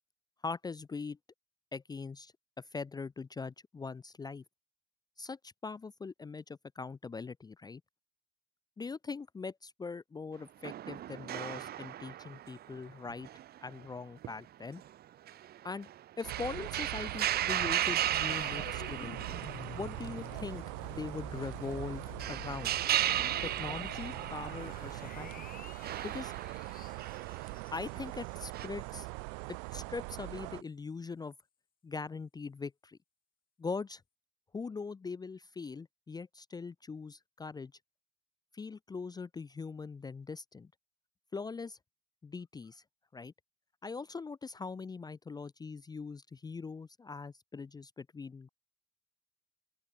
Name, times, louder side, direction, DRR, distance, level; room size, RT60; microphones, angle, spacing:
voice 1, 0.4-1.2 1.7-4.4 5.2-7.8 8.8-13.3 13.6-14.8 15.6-15.9 16.2-19.2 19.7-20.6 20.9-22.0 22.3-22.8 23.4-25.3 26.0-26.3 27.7-29.1 29.7-31.3 31.8-33.0 33.6-34.0 34.5-37.7 38.5-40.7 41.3-41.8 42.2-42.8 43.1-43.3 43.8-48.5, left 4 dB, 20° left, 0.5 m, -41 dB
sound 1, 10.6-13.9 14.2-14.3 14.8-14.9 15.3-20.2 20.5-20.6 21.8-24.8 25.8-27.6 28.5-28.7, right 12 dB, 55° right, 0.8 m, -35 dB
sound 2, 16.2-30.6, right 40 dB or more, 85° right, 0.4 m, -42 dB
sound 3, 17.8-29.0 29.3-29.5, left 8 dB, 50° left, 3.2 m, -50 dB
open air
supercardioid pair, 70°, 19 cm